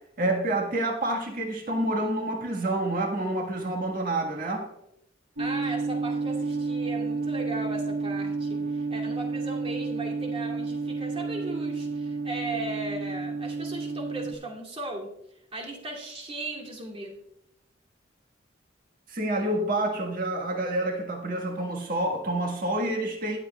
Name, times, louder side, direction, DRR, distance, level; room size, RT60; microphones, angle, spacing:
voice 1, 0.2-4.7 19.1-23.4, right 1 dB, 50° right, 1 dB, 1.5 m, -28 dB
voice 2, 5.4-15.1 15.5-17.2, right 2 dB, 30° right, -1 dB, 2.5 m, -37 dB
sound 1, 5.4-14.3, right 4 dB, 85° right, 1.0 m, -31 dB
19.5 x 7.6 x 2.3 m, 0.80 s
head